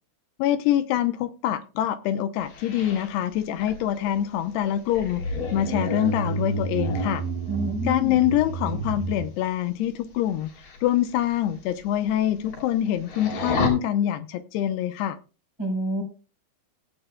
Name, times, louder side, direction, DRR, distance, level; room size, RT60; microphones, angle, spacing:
voice 1, 0.4-7.2 7.8-10.5 10.8-15.2, left 11 dB, 85° left, 10 dB, 2.8 m, -25 dB
sound 1, 2.5-9.3 10.4-10.8 11.1-11.2 11.7-11.8 12.1-12.8 13.0-13.7, right 1 dB, 55° left, 4.7 m, -30 dB
voice 2, 7.5-8.2 15.6-16.0, right 1 dB, 5° right, 2 dB, 4.1 m, -28 dB
17.0 x 12.0 x 2.3 m, 0.34 s
omnidirectional pair, 4.8 m